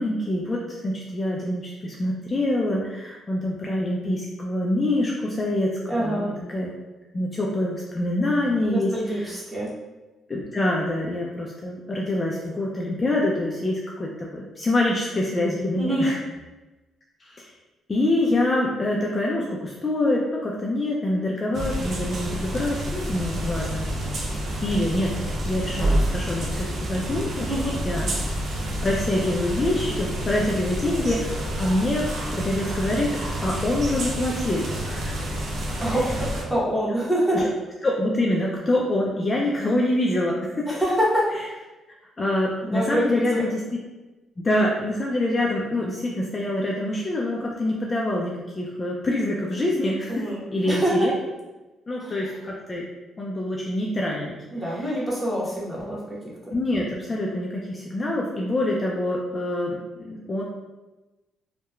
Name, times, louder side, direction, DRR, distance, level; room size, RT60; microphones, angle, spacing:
voice 1, 0.0-5.7 6.0-6.7 7.1-9.3 10.3-16.2 17.2-17.5 17.9-23.9 24.6-27.5 27.8-28.1 28.8-35.3 37.3-37.5 37.8-40.7 42.2-43.8 44.4-50.3 50.5-51.1 51.9-52.9 53.2-54.4 56.5-60.4, left 1 dB, 30° left, -3 dB, 0.4 m, -25 dB
voice 2, 5.9-6.3 8.7-9.7 15.8-16.1 27.5-27.8 28.6-28.7 35.8-37.4 40.7-41.3 42.6-43.4 50.1-51.1 52.0-52.1 54.5-56.2, equal, 10° right, -6 dB, 1.0 m, -25 dB
sound 1, 21.5-36.4, right 1 dB, 55° right, 0.6 m, -28 dB
2.9 x 2.1 x 2.3 m, 1.1 s
cardioid pair, 90°, 0 cm